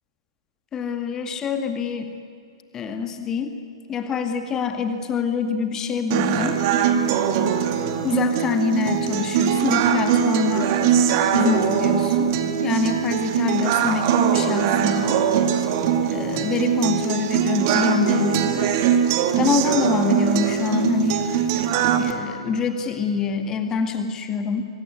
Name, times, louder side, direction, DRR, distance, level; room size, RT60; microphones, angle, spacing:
voice 1, 0.7-2.1 2.7-3.6 3.9-6.6 8.0-10.9 11.3-15.2 16.1-18.7 19.2-21.3 22.0-24.6, left 5 dB, 20° left, 7 dB, 1.9 m, -25 dB
sound 1, 6.1-22.1, right 8 dB, 35° right, 2.4 m, -21 dB
24.5 x 24.5 x 9.6 m, 2.6 s
figure-of-eight pair, 115°, 3 cm